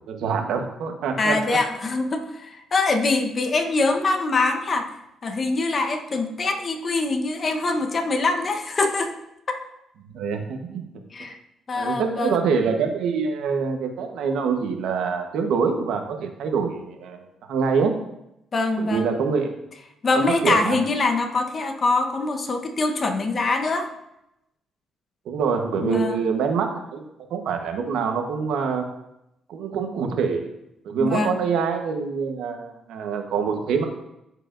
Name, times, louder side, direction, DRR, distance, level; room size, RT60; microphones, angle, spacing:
voice 1, 0.1-1.6 10.1-10.8 11.7-17.2 17.5-17.9 18.8-19.6 20.2-20.8 25.2-28.8 29.5-30.5 30.8-33.8, right 5 dB, 80° right, 4 dB, 1.1 m, -25 dB
voice 2, 1.2-4.9 5.2-9.1 11.1-11.4 11.7-12.4 18.5-19.1 20.0-23.9 25.8-26.2 31.0-31.4, left 3 dB, 40° left, 4 dB, 1.0 m, -23 dB
13.5 x 4.9 x 2.6 m, 0.83 s
cardioid pair, 90°, 0 cm